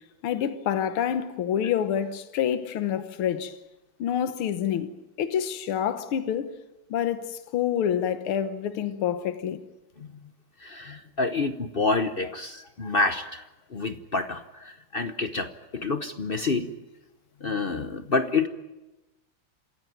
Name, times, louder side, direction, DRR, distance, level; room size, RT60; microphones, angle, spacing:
voice 1, 0.2-3.6 4.0-4.9 5.2-6.5 6.9-9.6, left 9 dB, 75° left, 2.0 m, -27 dB
voice 2, 10.6-13.4 13.7-16.7 17.4-18.5, left 3 dB, 50° left, 0.6 m, -28 dB
27.0 x 16.0 x 9.3 m
omnidirectional pair, 2.4 m